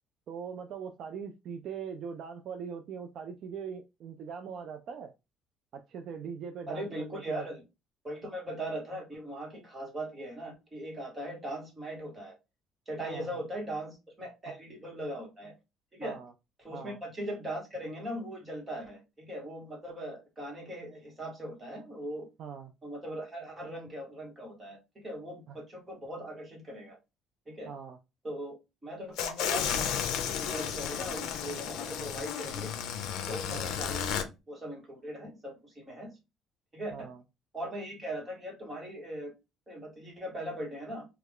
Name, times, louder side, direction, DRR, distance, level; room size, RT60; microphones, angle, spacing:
voice 1, 0.3-5.1 5.7-7.4 13.0-13.4 16.0-16.3 16.7-17.0 22.4-22.7 25.5-25.6 27.7-28.0 33.4-33.7 36.9-37.2, right 6 dB, 50° right, 0.3 m, -41 dB
voice 2, 6.7-7.6 8.0-12.3 12.9-15.5 15.9-16.2 16.6-22.3 22.8-27.0 27.5-27.7 28.2-28.5 28.8-30.0 30.4-32.7 33.2-36.2 36.7-36.9 37.5-39.3 39.7-41.1, right 1 dB, 15° right, 1.2 m, -39 dB
sound 1, 29.2-34.2, left 8 dB, 75° left, 0.5 m, -33 dB
3.2 x 2.3 x 3.5 m
cardioid pair, 160°, 0 cm